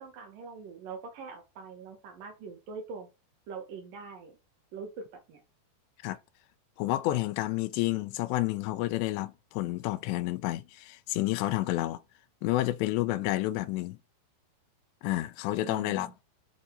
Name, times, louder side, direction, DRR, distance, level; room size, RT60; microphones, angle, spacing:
voice 1, 0.0-3.1 3.5-4.4 4.7-5.4 15.6-16.1, right 5 dB, 60° right, 2.8 m, -43 dB
voice 2, 6.8-12.0 12.4-14.0 15.0-16.1, left 17 dB, 85° left, 2.8 m, -30 dB
8.2 x 4.1 x 5.1 m
omnidirectional pair, 5.0 m